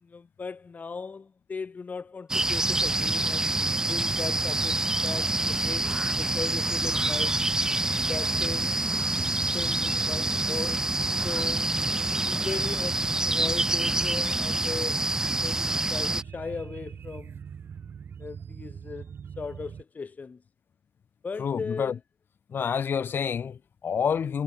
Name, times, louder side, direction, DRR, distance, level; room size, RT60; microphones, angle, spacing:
voice 1, 0.0-3.6 3.9-7.4 8.1-8.8 9.5-10.9 11.1-11.8 12.3-17.4 18.2-20.4 21.2-22.0, left 4 dB, 45° left, 1.2 m, -38 dB
sound 1, 2.3-16.2, right 2 dB, 15° right, 0.5 m, -27 dB
sound 2, 2.4-19.8, right 7 dB, 65° right, 2.5 m, -42 dB
voice 2, 21.4-22.0 22.5-24.4, left 7 dB, 65° left, 2.4 m, -28 dB
cardioid pair, 75°, 4 cm